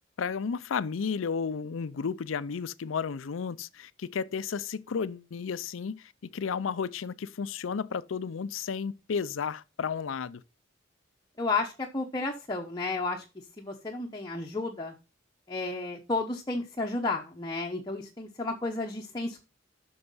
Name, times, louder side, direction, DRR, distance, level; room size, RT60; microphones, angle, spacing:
voice 1, 0.2-10.4, left 6 dB, 85° left, 0.5 m, -33 dB
voice 2, 11.4-13.2 13.6-14.9 15.5-19.4, left 3 dB, 20° left, 0.9 m, -32 dB
7.8 x 6.3 x 5.5 m
head